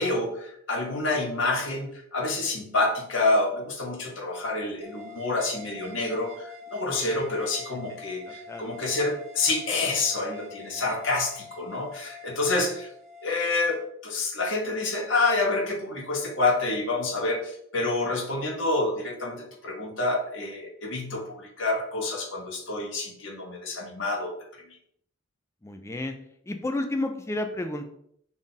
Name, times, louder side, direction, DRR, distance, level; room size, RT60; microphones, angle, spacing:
voice 1, 0.0-12.9 13.2-24.4, left 2 dB, 60° left, 1 dB, 0.8 m, -28 dB
sound 1, 4.8-13.8, left 3 dB, 35° right, 0.7 m, -45 dB
voice 2, 8.3-8.8 10.7-10.9 25.6-26.2 26.4-27.9, left 2 dB, 15° left, 6 dB, 0.3 m, -32 dB
4.0 x 2.4 x 3.7 m, 0.69 s
head